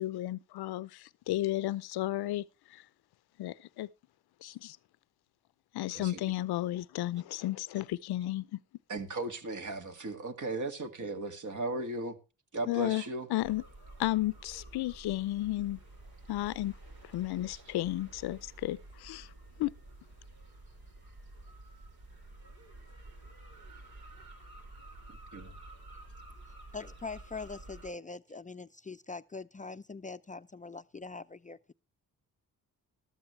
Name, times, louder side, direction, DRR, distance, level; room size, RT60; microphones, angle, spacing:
voice 1, 0.0-2.4 2.7-2.8 3.4-3.9 4.4-4.8 5.7-8.6 12.7-13.0 13.3-13.6 14.0-15.8 16.3-16.7 17.1-19.3 19.6-19.7, left 15 dB, 85° left, 0.7 m, -33 dB
voice 2, 8.9-12.2 12.5-13.3 25.3-25.5, right 2 dB, 50° right, 2.2 m, -36 dB
sound 1, 13.4-27.9, right 2 dB, 70° right, 4.7 m, -51 dB
voice 3, 26.7-31.7, left 4 dB, 20° left, 0.5 m, -43 dB
14.0 x 13.0 x 3.2 m
cardioid pair, 60°, 37 cm